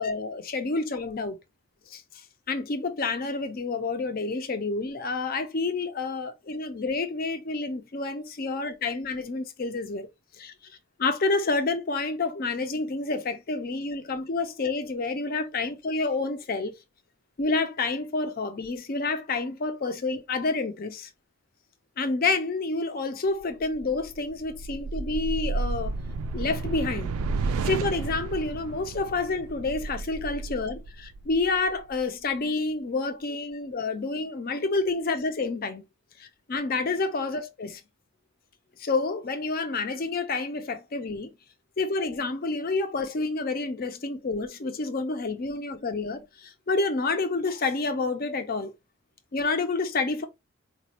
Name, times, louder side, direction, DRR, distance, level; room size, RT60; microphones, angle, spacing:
voice 1, 0.0-1.4 1.9-2.0 2.5-10.1 10.4-10.5 11.0-16.7 17.4-21.1 22.0-25.9 26.3-27.1 27.7-35.8 36.2-37.8 38.8-41.3 41.8-48.7 49.3-50.3, left 3 dB, 40° left, 0.5 m, -29 dB
sound 1, 23.6-32.0, right 4 dB, 75° right, 0.3 m, -32 dB
4.1 x 2.2 x 2.8 m
head